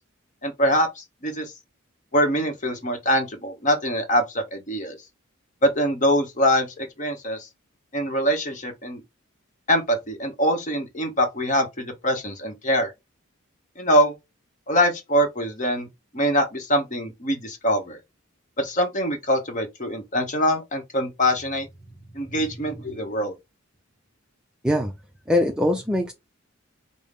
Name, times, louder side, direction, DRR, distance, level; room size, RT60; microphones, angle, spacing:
voice 1, 0.4-1.5 2.1-5.0 5.6-7.5 7.9-9.0 9.7-12.9 13.8-14.1 14.7-15.9 16.1-18.0 18.6-21.7 22.1-23.3, equal, 35° left, 0.9 m, -23 dB
voice 2, 21.9-22.5 24.6-24.9 25.3-26.1, left 1 dB, 5° right, 0.4 m, -24 dB
5.3 x 2.0 x 3.5 m
head